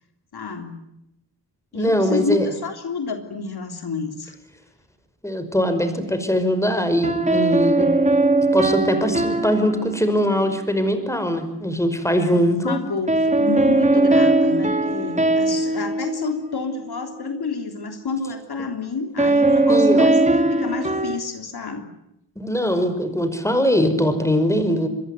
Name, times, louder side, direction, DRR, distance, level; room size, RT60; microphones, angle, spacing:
voice 1, 0.3-0.8 1.7-4.4 12.1-21.9, left 4 dB, 65° left, 5 dB, 3.5 m, -30 dB
voice 2, 1.7-2.5 5.2-7.9 8.5-12.8 19.7-20.1 22.4-24.9, equal, 5° left, 9 dB, 5.4 m, -21 dB
sound 1, 7.0-10.4 13.1-16.9 19.2-21.2, right 2 dB, 15° right, 2.9 m, -19 dB
26.5 x 22.0 x 9.6 m, 0.82 s
wide cardioid pair, 90°, 42 cm